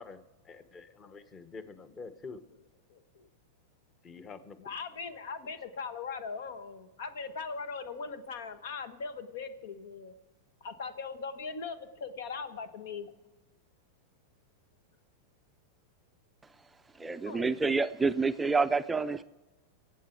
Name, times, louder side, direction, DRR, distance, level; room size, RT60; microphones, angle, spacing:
voice 1, 0.0-2.4 4.0-4.6, left 4 dB, 25° left, 11 dB, 1.0 m, -47 dB
voice 2, 2.9-3.3 4.6-10.1 10.6-13.1 17.0-17.6, left 5 dB, 80° left, 10 dB, 1.4 m, -40 dB
voice 3, 17.0-19.2, right 4 dB, 10° right, 10 dB, 0.4 m, -28 dB
24.5 x 8.4 x 4.5 m, 1.2 s
supercardioid pair, 135°, 0 cm